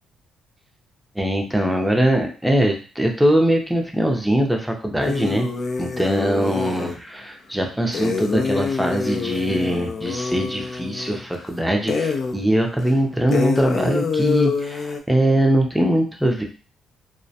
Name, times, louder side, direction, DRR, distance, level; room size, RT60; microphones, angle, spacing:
voice 1, 1.2-5.5 5.8-16.4, right 1 dB, 5° right, 2 dB, 0.5 m, -21 dB
sound 1, 5.0-7.0 7.9-11.5 11.9-12.4 12.8-12.9 13.3-15.0, left 4 dB, 55° left, 0.4 m, -26 dB
2.3 x 2.1 x 2.7 m, 0.38 s
cardioid pair, 90°, 0 cm